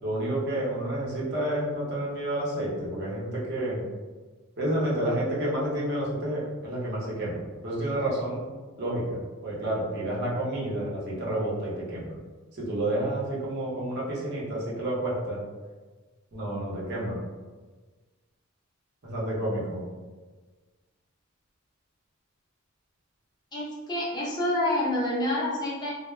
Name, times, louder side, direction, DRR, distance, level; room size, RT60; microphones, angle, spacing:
voice 1, 0.0-3.8 4.6-8.4 8.8-12.2 12.5-15.4 16.3-17.2 19.0-19.9, right 1 dB, 55° right, -6 dB, 0.8 m, -30 dB
voice 2, 23.5-25.9, left 1 dB, 20° left, -6 dB, 0.6 m, -28 dB
2.2 x 2.1 x 3.1 m, 1.3 s
head